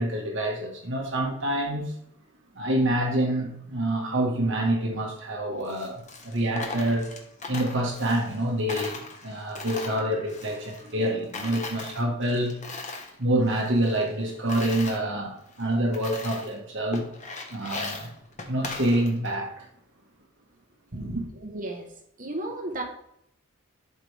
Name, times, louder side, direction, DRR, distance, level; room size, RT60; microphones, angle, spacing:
voice 1, 0.0-1.9 2.5-7.1 7.5-12.6 13.2-17.1 17.5-18.1 18.5-19.7 20.9-21.2, right 1 dB, 55° right, 1.5 m, -27 dB
Coin (dropping), 5.6-8.4 8.7-11.1 11.3-13.1 13.5-15.0 15.5-15.6 15.9-16.6 16.9-19.3, left 3 dB, 35° left, 1.2 m, -38 dB
voice 2, 21.3-21.9 22.2-22.8, right 2 dB, 40° right, 1.1 m, -33 dB
11.5 x 4.9 x 3.4 m
head